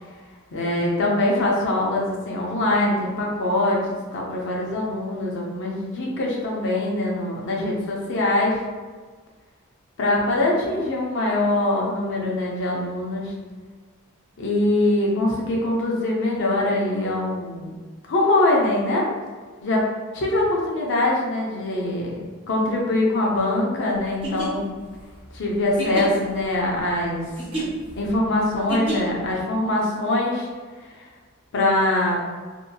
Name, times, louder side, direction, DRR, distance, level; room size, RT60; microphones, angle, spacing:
voice 1, 0.5-8.6 10.0-13.3 14.4-17.7 18.1-19.0 19.6-19.9 20.1-22.2 22.5-24.7 25.3-27.3 28.0-30.5 31.5-32.2, left 2 dB, 60° left, -3 dB, 0.6 m, -23 dB
sound 1, 24.1-29.3, right 2 dB, 25° right, 0.8 m, -32 dB
2.7 x 2.7 x 2.2 m, 1.5 s
head